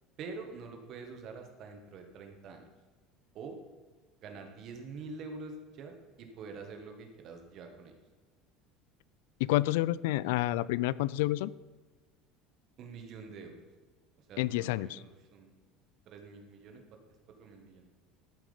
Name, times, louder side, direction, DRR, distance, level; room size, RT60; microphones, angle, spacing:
voice 1, 0.2-2.6 3.3-3.6 4.2-7.9 12.8-13.6 14.2-15.5 16.1-16.8 17.4-17.9, right 4 dB, 40° right, 4 dB, 1.5 m, -46 dB
voice 2, 9.4-11.5 14.4-15.0, left 16 dB, 85° left, 20 dB, 0.3 m, -29 dB
13.0 x 6.3 x 5.1 m, 1.3 s
cardioid pair, 165°, 0 cm